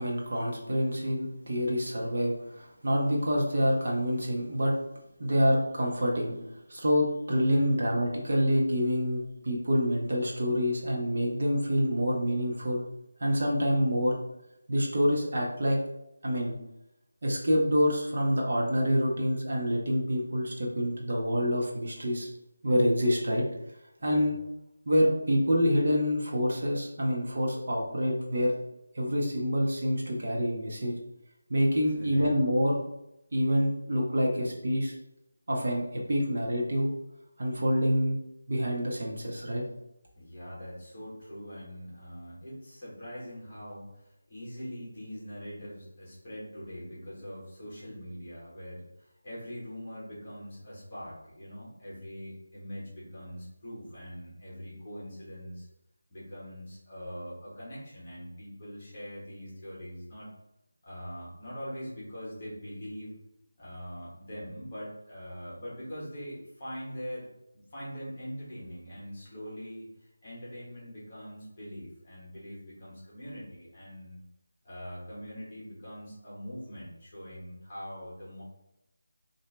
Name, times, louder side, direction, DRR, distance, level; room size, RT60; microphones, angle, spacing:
voice 1, 0.0-4.7 5.2-6.3 6.7-12.8 13.2-14.1 14.7-15.8 16.2-16.5 17.2-22.3 22.6-23.4 24.0-24.3 24.9-28.5 28.9-30.9 31.5-32.7 33.3-34.9 35.5-36.9 37.4-38.2 38.5-39.6, equal, 40° right, -2 dB, 0.8 m, -27 dB
voice 2, 7.4-7.7 24.0-24.3 31.8-32.3 40.1-55.7 56.1-60.3 60.8-63.1 63.6-67.3 67.7-74.2 74.6-78.4, equal, 25° left, -8 dB, 1.4 m, -42 dB
4.1 x 2.7 x 3.3 m, 0.88 s
figure-of-eight pair, 180°, 0 cm